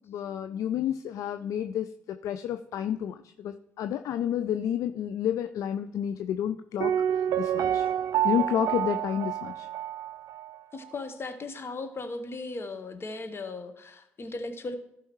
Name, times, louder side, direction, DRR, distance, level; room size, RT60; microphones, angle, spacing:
voice 1, 0.1-7.9 8.2-9.7, left 10 dB, 55° left, 10 dB, 0.4 m, -30 dB
Piano, 6.8-10.6 10.8-10.9, right 10 dB, 60° right, 0.4 m, -28 dB
voice 2, 10.7-14.8, left 3 dB, 35° left, 9 dB, 1.1 m, -37 dB
15.5 x 5.6 x 3.1 m, 0.83 s
figure-of-eight pair, 40°, 7 cm